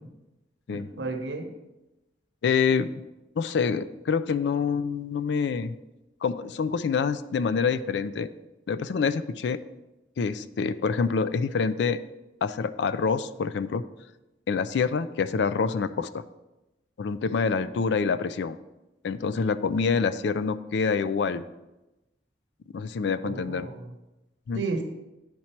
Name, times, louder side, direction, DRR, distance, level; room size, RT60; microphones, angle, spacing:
voice 1, 0.7-1.5 23.2-24.0 24.5-24.8, right 3 dB, 80° right, 5 dB, 0.9 m, -33 dB
voice 2, 2.4-2.9 3.4-5.8 6.2-8.3 8.7-9.6 10.2-12.0 12.4-13.8 14.5-16.1 17.0-18.6 19.0-21.4 22.7-23.7 24.5-24.6, left 5 dB, 70° left, 14 dB, 0.4 m, -26 dB
9.4 x 4.3 x 4.4 m, 1.0 s
head